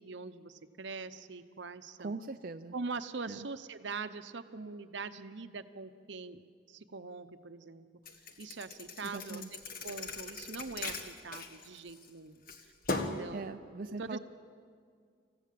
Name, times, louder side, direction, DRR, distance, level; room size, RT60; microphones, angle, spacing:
voice 1, 0.0-2.1 2.7-6.4 6.7-7.9 8.4-9.4 9.8-12.7 13.0-13.4 13.9-14.2, right 4 dB, 70° right, 11 dB, 0.9 m, -43 dB
voice 2, 2.0-2.7 3.3-3.5 9.0-9.5 13.3-14.2, right 3 dB, 45° right, 6 dB, 0.5 m, -41 dB
Thump thud, 8.1-12.1 12.5-13.3, left 3 dB, 50° left, 1.5 m, -39 dB
27.0 x 15.5 x 7.6 m, 2.2 s
head